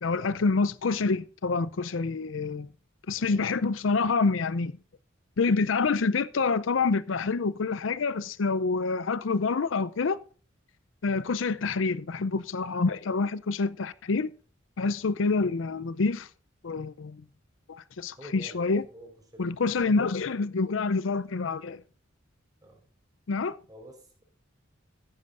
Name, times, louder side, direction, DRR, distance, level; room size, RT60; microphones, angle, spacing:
voice 1, 0.0-2.7 3.1-4.7 5.4-10.2 11.0-14.3 14.8-16.3 16.6-17.2 17.7-18.8 19.4-21.8 23.3-23.6, left 4 dB, 75° left, 0.5 m, -27 dB
voice 2, 3.1-3.6 11.0-11.3 18.2-20.2 22.6-22.8 23.7-24.2, right 1 dB, 20° right, 4.4 m, -50 dB
14.5 x 11.0 x 2.5 m
head